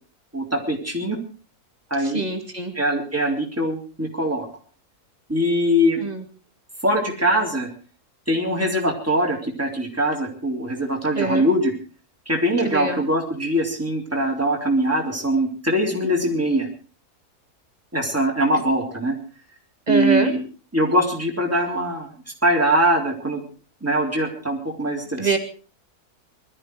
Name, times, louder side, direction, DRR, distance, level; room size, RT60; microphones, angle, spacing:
voice 1, 0.3-1.2 1.9-2.2 2.8-4.5 5.3-6.0 6.8-7.7 8.3-11.7 12.3-16.7 17.9-19.2 19.9-20.4 20.7-22.1 22.4-23.4 23.8-25.4, equal, 10° right, 0 dB, 3.7 m, -22 dB
voice 2, 2.0-2.7 6.0-6.2 11.1-11.5 12.6-13.0 19.9-20.3 25.2-25.4, right 3 dB, 25° right, 5 dB, 2.2 m, -24 dB
20.5 x 13.0 x 4.7 m, 0.39 s
omnidirectional pair, 1.6 m